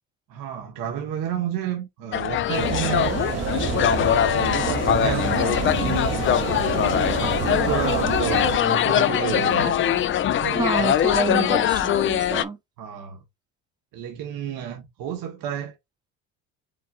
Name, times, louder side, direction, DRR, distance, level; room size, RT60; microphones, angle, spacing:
voice 1, 0.3-3.1 3.5-4.1 4.6-6.0 6.6-10.6 12.8-13.2 13.9-15.7, right 9 dB, 70° right, 1.1 m, -31 dB
sound 1, 2.1-12.4, left 10 dB, 35° left, 0.4 m, -22 dB
sound 2, 2.6-8.6, right 6 dB, 45° right, 1.0 m, -28 dB
voice 2, 10.6-12.6, right 3 dB, 10° right, 0.8 m, -27 dB
5.3 x 3.6 x 2.4 m
supercardioid pair, 80°, 36 cm